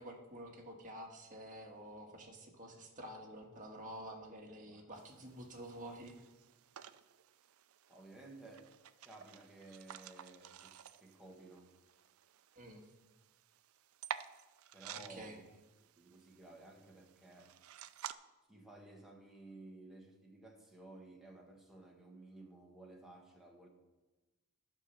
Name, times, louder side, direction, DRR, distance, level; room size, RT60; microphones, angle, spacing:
voice 1, 0.0-6.2 12.5-12.8 14.9-15.4, right 1 dB, 40° right, 1.6 m, -49 dB
voice 2, 4.6-5.3 7.9-8.8 9.0-11.8 14.7-15.4 15.8-17.6 18.5-23.7, right 2 dB, ahead, 1.5 m, -56 dB
sound 1, 5.0-18.1, right 9 dB, 80° right, 0.5 m, -52 dB
12.0 x 5.7 x 6.7 m
head